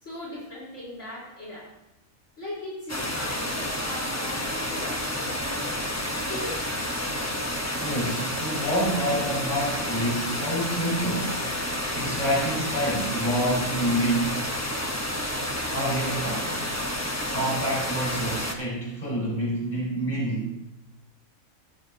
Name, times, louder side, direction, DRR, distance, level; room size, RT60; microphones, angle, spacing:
voice 1, 0.0-1.7 2.4-5.8 6.3-6.6, left 1 dB, 60° left, -7 dB, 4.5 m, -38 dB
sound 1, 2.9-18.6, left 1 dB, 15° left, 0.9 m, -30 dB
voice 2, 7.8-11.4 11.9-14.4 15.7-16.5 17.3-20.5, right 1 dB, 35° left, -6 dB, 4.6 m, -27 dB
14.0 x 9.9 x 2.8 m, 0.91 s
omnidirectional pair, 1.4 m